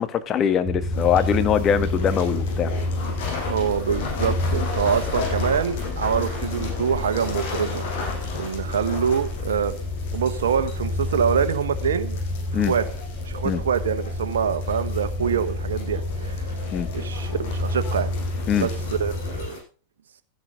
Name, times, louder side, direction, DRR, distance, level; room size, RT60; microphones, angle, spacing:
voice 1, 0.0-2.7 12.5-12.7 13.4-13.6 16.7-16.9 18.5-18.7, left 8 dB, 35° left, 10 dB, 1.8 m, -22 dB
sound 1, 0.6-19.5, left 2 dB, ahead, 6.1 m, -29 dB
sound 2, 0.9-19.6, left 4 dB, 65° left, 7.0 m, -35 dB
voice 2, 3.5-9.7 10.1-12.2 12.5-12.8 13.2-16.6 16.9-18.1 18.6-18.7 19.0-19.6, right 7 dB, 75° right, 9 dB, 1.3 m, -25 dB
14.5 x 10.5 x 5.2 m, 0.40 s
hypercardioid pair, 95°, 0 cm